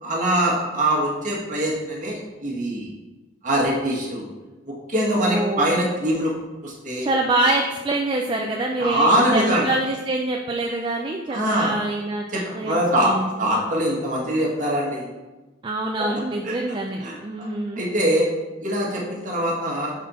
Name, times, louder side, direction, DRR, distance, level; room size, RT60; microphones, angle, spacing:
voice 1, 0.0-2.9 3.4-4.3 4.7-6.3 6.6-7.1 8.8-9.7 11.3-11.7 12.3-15.1 16.0-16.1 16.4-16.5 17.0-17.5 17.7-18.3 18.6-20.0, right 1 dB, 40° right, -3 dB, 1.4 m, -23 dB
voice 2, 5.1-5.7 7.0-12.3 12.5-12.8 13.0-13.3 15.6-17.9, right 2 dB, 25° right, 1 dB, 0.3 m, -25 dB
5.8 x 4.2 x 4.1 m, 1.2 s
head